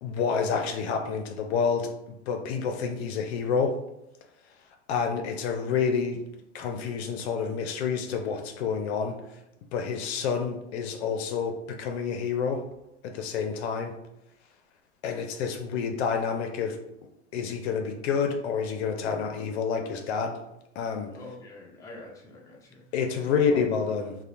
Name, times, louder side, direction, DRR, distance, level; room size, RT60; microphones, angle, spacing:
voice 1, 0.0-1.9 2.3-3.8 4.9-6.2 6.5-9.1 9.7-12.6 13.0-13.9 15.0-16.8 17.3-20.4 20.8-21.1 22.9-24.2, left 6 dB, 65° left, 4 dB, 0.5 m, -28 dB
voice 2, 21.1-23.6, left 2 dB, 10° left, -2 dB, 0.4 m, -44 dB
2.8 x 2.1 x 2.4 m, 0.84 s
hypercardioid pair, 100°, 35 cm